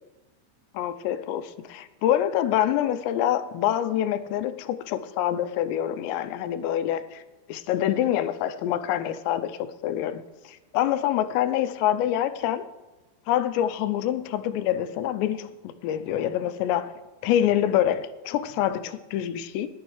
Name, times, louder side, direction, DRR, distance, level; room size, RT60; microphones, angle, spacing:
voice 1, 0.7-7.2 7.5-12.6 13.3-16.9 17.2-19.7, left 11 dB, 85° left, 2.7 m, -26 dB
19.5 x 11.5 x 3.2 m
omnidirectional pair, 5.1 m